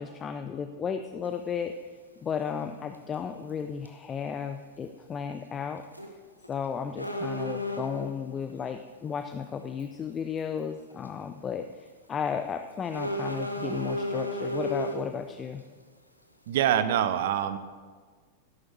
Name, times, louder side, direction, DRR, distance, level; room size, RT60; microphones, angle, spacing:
voice 1, 0.0-1.7 2.2-5.8 6.5-15.6, left 7 dB, 25° left, 8 dB, 0.5 m, -34 dB
sound 1, 1.2-1.3 2.9-3.1 3.5-3.6 3.8-3.9 5.8-6.1 6.4-6.5 7.0-8.1 9.2-9.3 9.8-9.9 10.4-10.6 11.0-11.1 12.9-15.1, equal, 90° left, 1.1 m, -33 dB
voice 2, 16.5-17.6, right 10 dB, 55° right, 13 dB, 0.6 m, -25 dB
12.5 x 11.5 x 4.7 m, 1.5 s
figure-of-eight pair, 90°, 0 cm